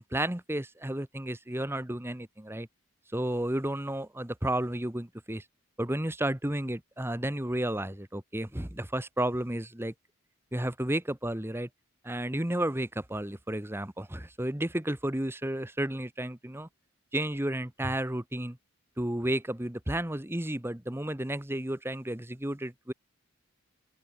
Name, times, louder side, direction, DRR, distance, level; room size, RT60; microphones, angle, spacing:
voice 1, 0.0-2.7 3.1-5.4 5.8-9.9 10.5-11.7 12.0-16.7 17.1-18.6 19.0-22.9, right 1 dB, 10° right, 1.2 m, -32 dB
open air
head